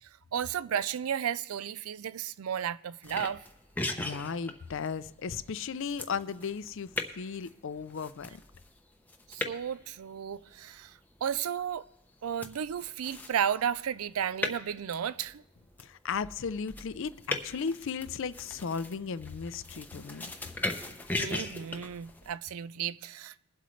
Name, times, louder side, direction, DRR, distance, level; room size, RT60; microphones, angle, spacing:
voice 1, 0.0-3.4 9.3-11.8 12.2-15.4 21.2-23.4, right 8 dB, 80° right, 0.4 m, -33 dB
sound 1, 3.0-22.3, left 2 dB, 10° left, 0.7 m, -40 dB
voice 2, 4.0-8.4 15.8-20.3, left 5 dB, 60° left, 0.5 m, -36 dB
22.0 x 7.8 x 3.2 m
head